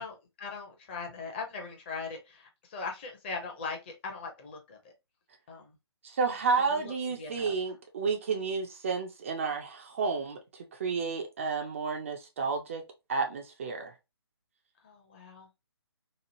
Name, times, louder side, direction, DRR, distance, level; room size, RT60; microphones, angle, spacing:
voice 1, 0.0-4.8 5.5-5.7 6.6-7.5 14.8-15.5, left 4 dB, 25° left, 0.6 m, -40 dB
voice 2, 6.0-10.4 10.8-12.8 13.1-13.9, right 5 dB, 30° right, 0.4 m, -31 dB
3.0 x 2.3 x 2.7 m
figure-of-eight pair, 140°, 14 cm